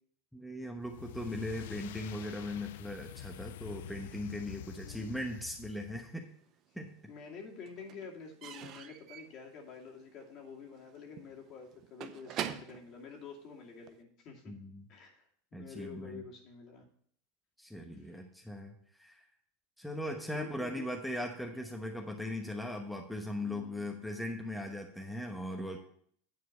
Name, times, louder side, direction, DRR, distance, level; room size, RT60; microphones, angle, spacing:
voice 1, 0.3-6.3 6.7-6.9 14.5-14.9 15.5-16.2 17.6-19.3 19.8-25.8, left 1 dB, ahead, 2 dB, 1.0 m, -39 dB
sound 1, 0.8-6.1, left 13 dB, 75° left, 0.3 m, -47 dB
voice 2, 4.8-5.2 7.1-14.5 14.9-16.9 17.9-18.2 20.3-20.8 21.5-21.7 23.4-23.9, left 5 dB, 50° left, 0 dB, 2.4 m, -49 dB
Slam / Squeak / Wood, 6.2-7.0 7.2-14.0, right 10 dB, 45° right, 0.6 m, -45 dB
9.5 x 4.5 x 6.4 m, 0.62 s
hypercardioid pair, 100°, 0 cm